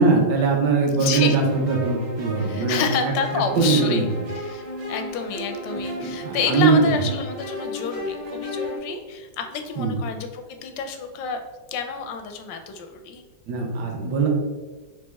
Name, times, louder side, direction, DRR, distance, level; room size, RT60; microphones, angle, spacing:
voice 1, 0.0-3.1 3.6-4.1 6.0-6.9 9.8-9.9 13.5-14.3, right 4 dB, 70° right, 0 dB, 1.3 m, -21 dB
voice 2, 1.0-1.4 2.4-4.1 4.3-4.6 4.9-11.4 11.7-13.2, left 6 dB, 85° left, 6 dB, 1.3 m, -29 dB
sound 1, 1.1-8.8, equal, 35° right, 0.5 m, -33 dB
4.0 x 3.2 x 3.4 m, 1.3 s
omnidirectional pair, 1.9 m